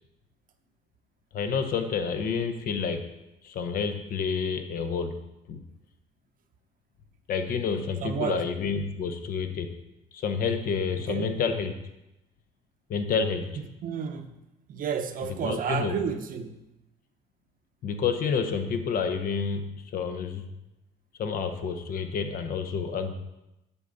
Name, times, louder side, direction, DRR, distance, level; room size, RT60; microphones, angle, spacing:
voice 1, 1.3-3.1 3.4-5.2 5.5-5.6 7.3-9.7 10.1-11.7 12.9-13.5 15.4-15.9 17.8-20.5 21.2-23.1, left 5 dB, 60° left, 7 dB, 0.9 m, -29 dB
voice 2, 8.0-8.4 11.0-11.3 13.8-14.3 14.7-16.7, right 7 dB, 55° right, 7 dB, 0.8 m, -31 dB
8.2 x 5.5 x 3.9 m, 0.92 s
cardioid pair, 110°, 17 cm